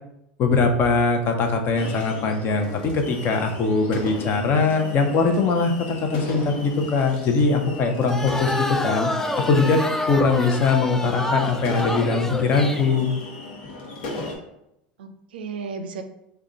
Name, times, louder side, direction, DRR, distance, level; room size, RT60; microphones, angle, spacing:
voice 1, 0.4-9.1 9.5-13.1, left 4 dB, 45° left, 4 dB, 0.7 m, -21 dB
sound 1, 1.8-14.4, left 2 dB, 80° left, 1.0 m, -36 dB
sound 2, 8.1-12.9, left 1 dB, 10° left, 0.3 m, -28 dB
voice 2, 8.2-9.1 15.0-16.0, right 4 dB, 85° right, 7 dB, 0.4 m, -36 dB
3.6 x 2.3 x 3.8 m, 0.82 s
hypercardioid pair, 95°, 5 cm